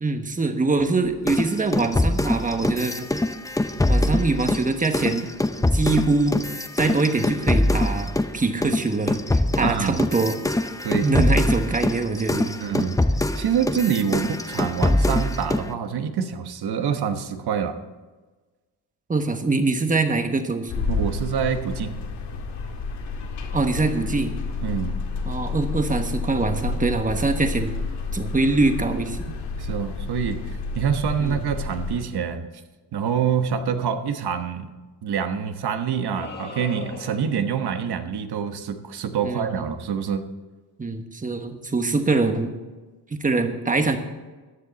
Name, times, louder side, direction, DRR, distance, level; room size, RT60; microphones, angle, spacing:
voice 1, 0.0-3.1 3.9-5.3 5.7-6.4 6.8-10.4 11.0-12.5 19.1-20.9 23.5-24.4 25.2-27.7 28.1-29.2 31.2-31.5 39.2-39.8 40.8-42.5 43.2-44.0, right 3 dB, 20° right, 6 dB, 1.2 m, -23 dB
sound 1, 1.3-8.3 8.6-15.7, left 1 dB, 10° left, 0.6 m, -23 dB
voice 2, 9.6-10.0 10.8-11.1 12.6-13.0 13.4-17.8 20.9-22.0 24.6-25.0 29.6-30.4 30.7-32.5 32.9-34.7 35.0-40.2, right 7 dB, 65° right, 8 dB, 1.2 m, -26 dB
sound 2, 20.7-32.0, left 4 dB, 75° left, 1.9 m, -30 dB
sound 3, 36.1-37.5, left 3 dB, 25° left, 1.6 m, -38 dB
14.5 x 10.5 x 4.1 m, 1.3 s
cardioid pair, 130°, 41 cm